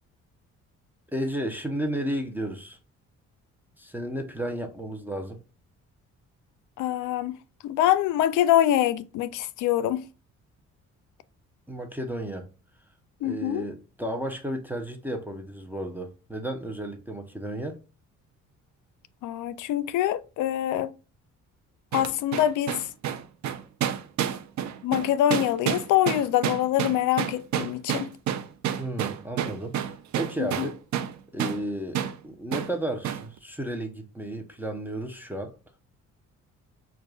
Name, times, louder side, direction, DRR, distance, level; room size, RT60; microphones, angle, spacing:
voice 1, 1.1-2.8 3.8-5.4 11.7-12.5 13.2-17.8 28.8-30.8 31.3-35.5, right 1 dB, 5° right, 0.7 m, -33 dB
voice 2, 6.8-7.4 7.6-10.1 13.2-13.7 19.2-20.9 21.9-22.9 24.8-28.1 30.4-30.7, left 12 dB, 80° left, 0.5 m, -25 dB
sound 1, 21.9-31.1 31.4-31.6 31.9-32.2 32.5-32.7 33.0-33.3, right 9 dB, 70° right, 0.6 m, -29 dB
6.3 x 2.4 x 2.3 m
cardioid pair, 90°, 30 cm